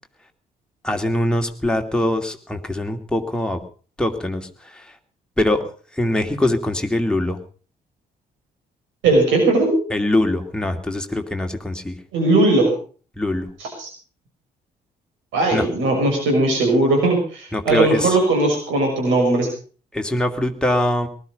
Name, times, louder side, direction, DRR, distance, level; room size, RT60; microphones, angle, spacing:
voice 1, 0.8-3.6 4.0-4.5 5.4-5.6 6.0-7.4 9.9-11.9 13.2-13.5 15.5-15.7 17.5-18.1 19.9-21.1, left 1 dB, 5° left, 4 dB, 2.5 m, -22 dB
voice 2, 9.0-9.8 12.1-12.7 13.6-13.9 15.3-19.5, right 2 dB, 65° right, 2 dB, 6.0 m, -18 dB
19.5 x 12.5 x 5.3 m, 0.40 s
figure-of-eight pair, 40°, 21 cm